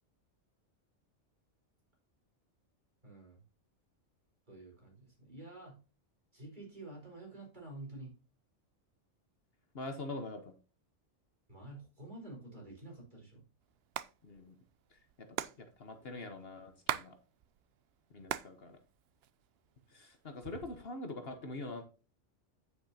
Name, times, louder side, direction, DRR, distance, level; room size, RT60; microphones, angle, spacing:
voice 1, 3.0-3.4 4.5-5.8 6.3-8.1 11.5-13.4 18.2-18.3, right 2 dB, 40° right, -1 dB, 4.5 m, -49 dB
voice 2, 9.7-10.5 14.2-14.5 14.9-17.2 18.1-18.8 19.9-21.8, left 2 dB, 55° left, 7 dB, 1.4 m, -44 dB
Hands, 13.7-14.1 14.4-14.5 14.7-17.1 17.4-18.6 18.9-19.7 20.3-20.9, right 11 dB, 65° right, 0.7 m, -39 dB
9.1 x 8.4 x 2.8 m, 0.32 s
omnidirectional pair, 1.2 m